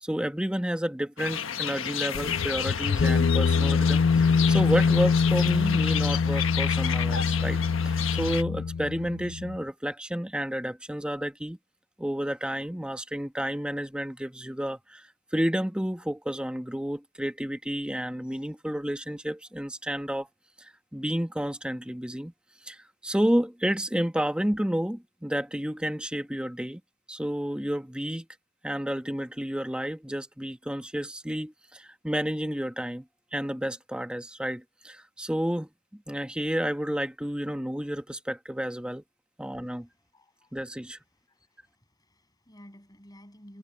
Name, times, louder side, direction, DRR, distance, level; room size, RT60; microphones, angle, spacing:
voice 1, 0.0-11.6 12.0-20.3 20.6-22.3 22.6-26.8 27.1-28.3 28.6-33.0 33.3-39.0 39.4-39.9 40.5-41.0, equal, 5° right, 1.1 m, -31 dB
sound 1, 1.2-8.4, left 8 dB, 75° left, 1.4 m, -32 dB
sound 2, 2.1-9.6, left 5 dB, 55° left, 0.4 m, -24 dB
voice 2, 39.6-40.6 41.3-43.6, equal, 20° left, 7.7 m, -54 dB
head